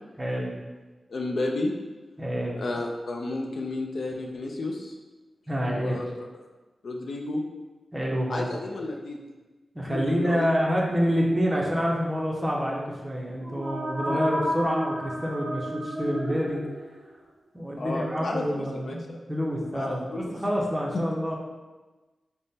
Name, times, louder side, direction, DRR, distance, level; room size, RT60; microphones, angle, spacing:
voice 1, 0.2-0.6 2.2-2.6 5.5-6.0 7.9-8.5 9.7-16.6 17.5-21.3, equal, 15° right, -3 dB, 0.5 m, -27 dB
voice 2, 1.1-1.7 2.5-4.9 5.7-6.3 6.8-7.4 8.3-9.2 9.9-10.5 17.8-18.9 19.7-20.3, left 2 dB, 65° left, 1 dB, 0.4 m, -32 dB
sound 1, 13.3-17.1, equal, 10° left, 1.4 m, -32 dB
3.5 x 2.0 x 4.0 m, 1.2 s
wide cardioid pair, 155°, 0 cm